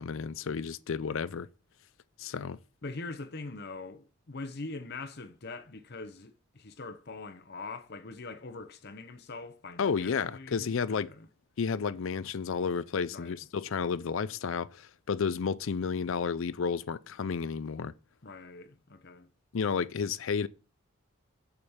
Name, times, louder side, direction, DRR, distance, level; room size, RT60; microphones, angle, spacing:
voice 1, 0.0-1.5 2.2-2.6 9.8-11.1 11.6-17.9 19.5-20.5, left 6 dB, 70° left, 0.5 m, -31 dB
voice 2, 2.8-11.3 13.1-13.4 18.2-19.3, left 3 dB, 50° left, 0.8 m, -43 dB
7.0 x 5.2 x 6.5 m
head